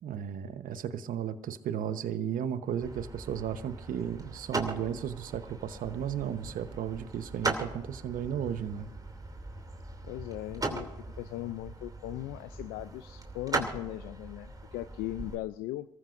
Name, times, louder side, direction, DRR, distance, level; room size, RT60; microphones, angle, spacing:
voice 1, 0.0-8.9, right 9 dB, 65° right, 11 dB, 1.0 m, -34 dB
sound 1, 2.8-15.4, right 3 dB, 25° right, 2.8 m, -39 dB
voice 2, 10.0-10.9 11.2-15.9, left 15 dB, 80° left, 13 dB, 0.5 m, -38 dB
27.0 x 14.5 x 2.6 m, 0.93 s
supercardioid pair, 60°, 16 cm